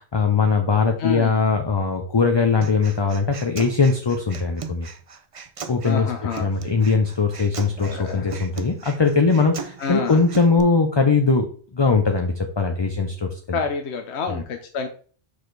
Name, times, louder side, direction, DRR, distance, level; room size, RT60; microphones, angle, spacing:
voice 1, 0.0-4.9 5.7-6.1 6.4-11.5 11.7-13.6 14.3-14.4, left 4 dB, 30° left, 5 dB, 0.6 m, -20 dB
voice 2, 1.0-1.4 5.8-6.5 7.8-8.3 9.8-10.2 13.5-14.9, left 5 dB, 75° left, 5 dB, 1.0 m, -28 dB
Human voice, 2.6-10.6, right 6 dB, 40° right, 0.5 m, -38 dB
6.4 x 4.9 x 3.9 m, 0.43 s
omnidirectional pair, 1.1 m